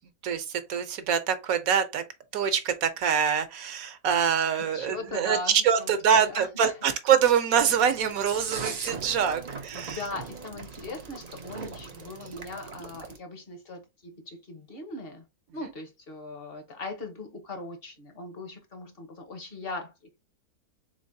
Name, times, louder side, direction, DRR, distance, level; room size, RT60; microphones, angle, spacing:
voice 1, 0.2-2.0 2.3-5.4 5.6-10.0, right 8 dB, 70° right, 1.2 m, -25 dB
voice 2, 4.6-7.0 9.7-15.2 15.5-20.2, left 2 dB, 40° left, 1.2 m, -40 dB
sound 1, 7.5-13.2, right 5 dB, 50° right, 0.5 m, -40 dB
4.0 x 3.8 x 2.7 m
omnidirectional pair, 1.6 m